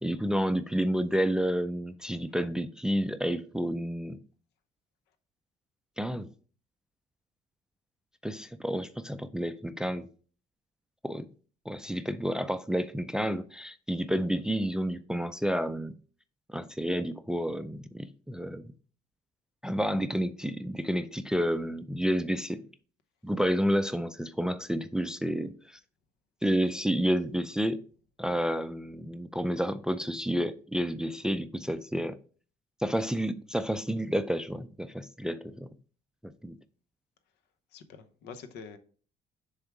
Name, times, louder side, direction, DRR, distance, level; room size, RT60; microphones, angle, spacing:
voice 1, 0.0-4.2 6.0-6.3 8.2-10.1 11.0-11.3 11.7-15.9 16.5-18.7 19.6-22.7 23.2-25.8 26.4-27.8 28.2-32.2 32.8-35.7 36.2-36.6, equal, 5° right, 0.3 m, -30 dB
voice 2, 37.7-38.8, left 5 dB, 80° left, 0.9 m, -45 dB
6.8 x 3.6 x 4.7 m
cardioid pair, 110°, 17 cm